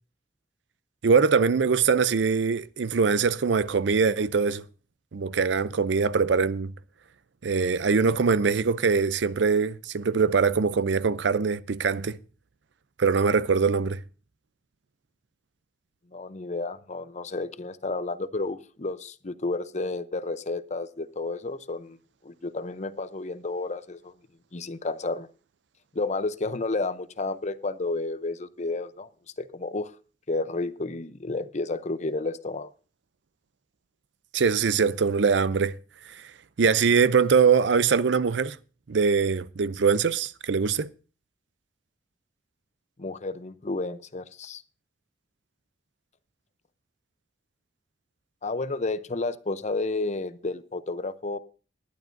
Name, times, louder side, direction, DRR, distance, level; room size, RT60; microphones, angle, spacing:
voice 1, 1.0-4.6 5.1-6.7 7.4-12.2 13.0-14.0 34.3-35.7 36.1-36.2 36.6-38.6 38.9-40.9, right 5 dB, 75° right, 0.5 m, -22 dB
voice 2, 16.1-22.0 22.2-24.1 24.5-25.3 25.9-29.1 29.4-29.9 30.3-32.7 43.0-44.6 48.4-51.4, left 3 dB, 40° left, 0.7 m, -31 dB
19.5 x 11.5 x 2.6 m
head